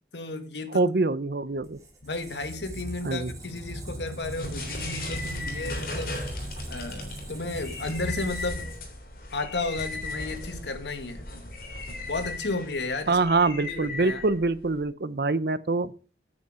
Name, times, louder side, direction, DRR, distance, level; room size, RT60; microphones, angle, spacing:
voice 1, 0.1-0.9 2.0-6.3 6.7-8.7 9.3-11.3 12.0-13.2 13.6-14.2, left 2 dB, 80° left, 1.6 m, -33 dB
voice 2, 0.7-1.8 3.0-3.3 13.1-15.9, right 3 dB, 60° right, 0.7 m, -25 dB
Squeak, 1.5-9.2, right 1 dB, 20° right, 3.2 m, -39 dB
sound 1, 4.2-14.8, left 2 dB, 55° left, 3.4 m, -37 dB
9.5 x 8.2 x 4.9 m
head